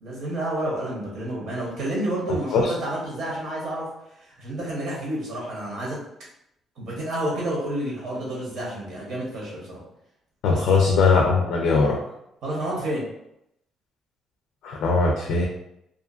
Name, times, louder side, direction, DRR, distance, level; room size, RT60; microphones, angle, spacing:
voice 1, 0.0-3.9 4.4-6.0 6.8-9.8 10.5-10.6 12.4-13.0, right 1 dB, 65° right, -4 dB, 0.8 m, -29 dB
voice 2, 10.4-12.0 14.6-15.5, left 4 dB, 75° left, 0 dB, 0.4 m, -20 dB
2.5 x 2.4 x 2.4 m, 0.80 s
cardioid pair, 165°, 0 cm